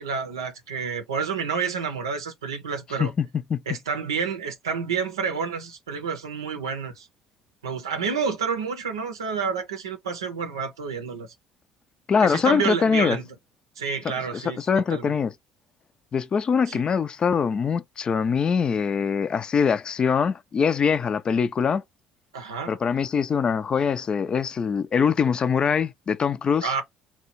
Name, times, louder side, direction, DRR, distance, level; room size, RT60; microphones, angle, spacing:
voice 1, 0.0-3.1 3.7-7.1 7.6-11.3 12.2-13.2 13.8-14.6 14.9-15.1 16.7-16.8 22.3-22.7 26.6-26.8, right 6 dB, 85° right, 0.6 m, -29 dB
voice 2, 3.0-3.6 12.1-13.2 14.3-15.3 16.1-21.8 22.7-26.7, left 6 dB, 40° left, 0.4 m, -23 dB
2.9 x 2.2 x 4.1 m
hypercardioid pair, 55°, 2 cm